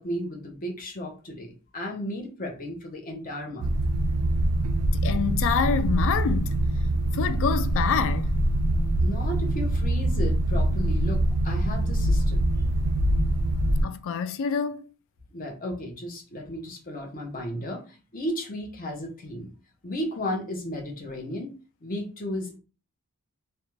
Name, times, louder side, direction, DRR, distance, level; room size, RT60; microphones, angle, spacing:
voice 1, 0.0-3.7 9.0-12.4 15.3-19.5 19.8-21.5 21.8-22.6, left 1 dB, 40° left, 0.7 m, -34 dB
sound 1, 3.6-13.8, right 1 dB, 80° right, 0.4 m, -24 dB
voice 2, 4.9-6.6 7.1-8.3 13.8-14.9, left 6 dB, 60° left, 0.3 m, -26 dB
2.5 x 2.2 x 3.0 m
head